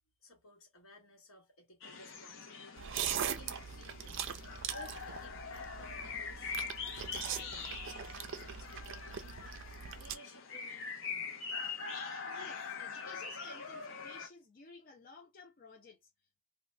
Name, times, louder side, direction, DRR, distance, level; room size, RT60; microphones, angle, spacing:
voice 1, 0.2-4.4 4.7-6.5 6.9-7.7 8.0-9.6 9.9-11.7, equal, 80° left, 1.4 m, -58 dB
sound 1, 1.8-14.3, left 5 dB, 60° left, 0.8 m, -43 dB
sound 2, 2.8-10.2, right 8 dB, 60° right, 0.5 m, -41 dB
voice 2, 12.2-16.4, left 3 dB, 40° left, 0.5 m, -55 dB
2.8 x 2.3 x 3.2 m
head